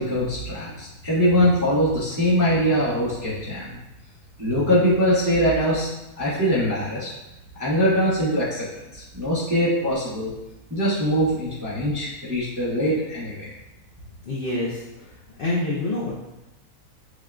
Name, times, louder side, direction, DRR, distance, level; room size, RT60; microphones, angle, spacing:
voice 1, 0.0-3.8 4.4-5.9 6.2-7.1 7.5-8.7 8.9-10.3 10.7-13.5, equal, 20° right, -8 dB, 0.5 m, -22 dB
voice 2, 14.3-15.1 15.4-16.3, left 2 dB, 60° left, -5 dB, 0.5 m, -27 dB
6.0 x 2.3 x 2.4 m, 0.95 s
omnidirectional pair, 1.6 m